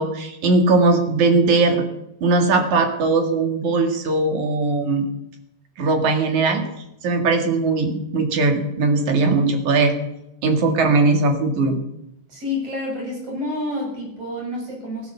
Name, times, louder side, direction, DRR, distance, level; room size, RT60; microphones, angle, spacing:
voice 1, 0.0-1.8 2.2-5.1 5.8-6.6 7.0-9.9 10.4-11.8, right 3 dB, 50° right, 5 dB, 2.8 m, -19 dB
voice 2, 12.3-15.1, left 2 dB, 30° right, -1 dB, 8.2 m, -28 dB
16.0 x 13.0 x 6.8 m, 0.83 s
omnidirectional pair, 5.4 m